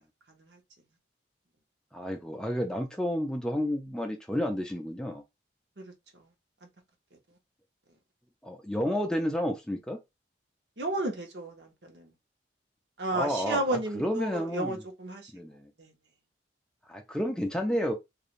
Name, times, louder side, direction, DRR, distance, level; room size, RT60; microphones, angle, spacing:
voice 1, 0.3-0.6 6.2-6.3 10.8-12.1 13.0-15.3 15.8-15.9, right 2 dB, 65° right, 0.9 m, -33 dB
voice 2, 1.9-5.2 8.4-10.0 13.1-14.8 15.3-15.7 16.9-17.9, equal, 5° left, 0.4 m, -31 dB
3.1 x 2.4 x 2.5 m
head